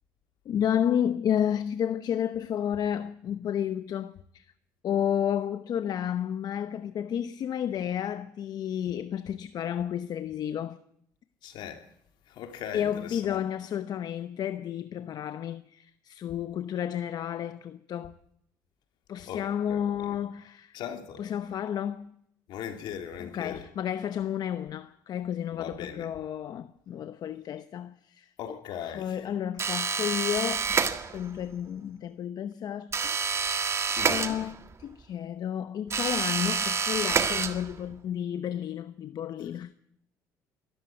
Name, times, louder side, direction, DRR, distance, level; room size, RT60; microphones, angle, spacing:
voice 1, 0.5-4.4 4.8-10.8 12.7-18.2 19.1-20.7 21.2-22.1 23.2-30.8 31.1-33.6 34.1-39.7, left 9 dB, 55° left, 0.8 m, -31 dB
voice 2, 11.4-11.8 12.3-13.4 19.3-20.2 20.7-21.2 22.5-23.6 25.5-26.1 28.4-29.2 34.0-34.4, left 9 dB, 70° left, 2.9 m, -39 dB
sound 1, 29.6-31.4 32.9-34.8 35.9-37.9, right 5 dB, 35° right, 1.7 m, -28 dB
22.0 x 13.5 x 9.3 m
cardioid pair, 95°, 8 cm